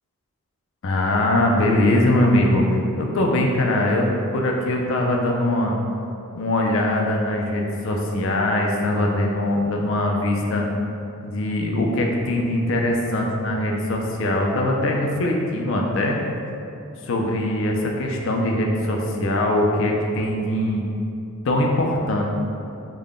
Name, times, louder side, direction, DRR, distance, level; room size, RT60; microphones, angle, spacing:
voice 1, 0.8-2.6 3.0-5.7 6.3-10.7 11.2-16.2 17.1-20.8 21.4-22.2, left 1 dB, 60° left, 1 dB, 0.4 m, -21 dB
3.6 x 2.2 x 3.6 m, 2.7 s
head